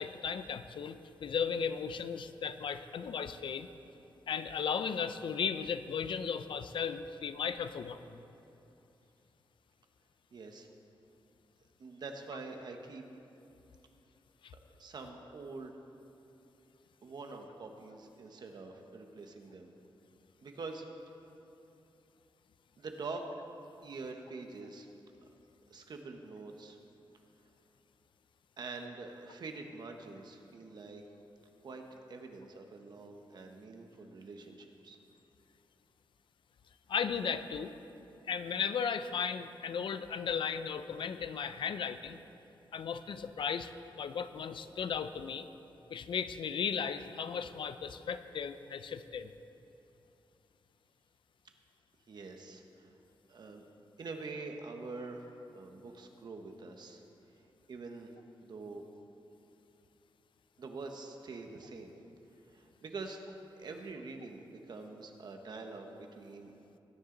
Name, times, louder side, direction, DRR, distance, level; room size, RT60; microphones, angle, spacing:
voice 1, 0.0-3.7 4.3-8.2 14.4-14.5 36.9-37.7 38.3-42.2 42.7-43.7 44.0-45.5 45.9-49.3, left 7 dB, 70° left, 11 dB, 0.5 m, -36 dB
voice 2, 10.3-10.7 11.8-13.0 14.8-15.7 17.0-19.7 20.4-20.8 22.8-23.3 23.8-24.9 25.7-26.8 28.6-31.0 31.6-35.0 52.1-52.9 53.3-53.6 54.0-57.0 57.7-58.1 58.4-58.8 60.6-61.9 62.5-63.3 63.6-66.5, right 3 dB, 55° right, 4 dB, 1.1 m, -45 dB
19.5 x 9.9 x 3.9 m, 2.9 s
wide cardioid pair, 170°, 9 cm